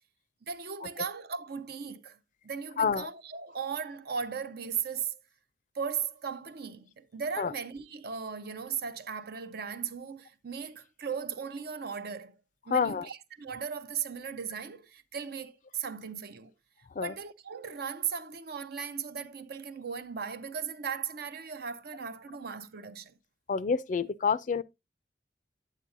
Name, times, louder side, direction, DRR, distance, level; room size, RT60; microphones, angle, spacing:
voice 1, 0.4-2.2 2.4-5.2 5.7-12.3 12.7-16.5 17.0-23.1, right 6 dB, 60° right, 0.6 m, -37 dB
voice 2, 2.8-3.1 7.4-7.5 12.7-13.1 17.0-17.1 23.5-24.6, left 5 dB, 45° left, 0.4 m, -28 dB
8.7 x 8.3 x 2.5 m
head